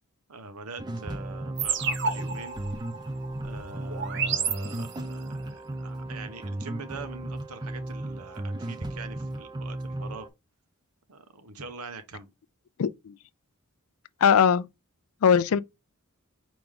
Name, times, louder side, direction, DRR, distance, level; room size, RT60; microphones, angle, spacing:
voice 1, 0.3-2.6 3.4-10.3 11.1-12.3, right 3 dB, 85° right, 1.0 m, -43 dB
sound 1, 0.8-10.3, right 1 dB, 20° right, 0.5 m, -35 dB
sound 2, 1.6-5.2, right 6 dB, 55° right, 0.9 m, -31 dB
voice 2, 12.8-13.1 14.2-14.7 15.2-15.6, left 7 dB, 70° left, 0.4 m, -20 dB
5.0 x 3.0 x 3.6 m
head